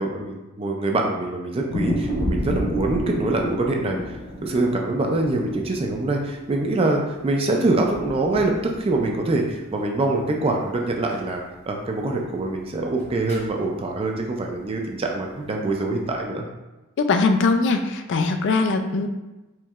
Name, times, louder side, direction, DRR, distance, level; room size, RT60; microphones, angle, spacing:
voice 1, 0.0-16.4, right 2 dB, 25° right, 1 dB, 0.3 m, -24 dB
sound 1, 1.7-7.3 7.7-9.5 9.8-9.9 11.1-11.3 13.0-13.5, equal, 30° left, 0.9 m, -30 dB
voice 2, 17.0-19.1, left 3 dB, 55° left, 6 dB, 0.3 m, -21 dB
4.4 x 3.1 x 2.4 m, 1.1 s
head